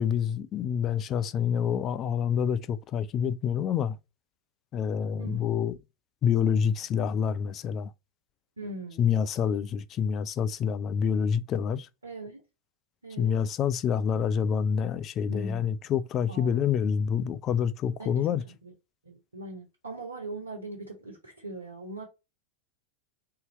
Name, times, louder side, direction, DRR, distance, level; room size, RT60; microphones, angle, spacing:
voice 1, 0.0-4.0 4.7-5.8 6.2-7.9 9.0-11.9 13.2-18.4, left 7 dB, 30° left, 0.4 m, -27 dB
voice 2, 5.2-5.6 8.6-9.1 12.0-12.4 13.0-13.3 15.3-15.8 16.3-16.6 18.0-18.7 19.0-22.1, right 2 dB, 80° right, 1.3 m, -41 dB
3.7 x 2.8 x 4.1 m
figure-of-eight pair, 90°, 0 cm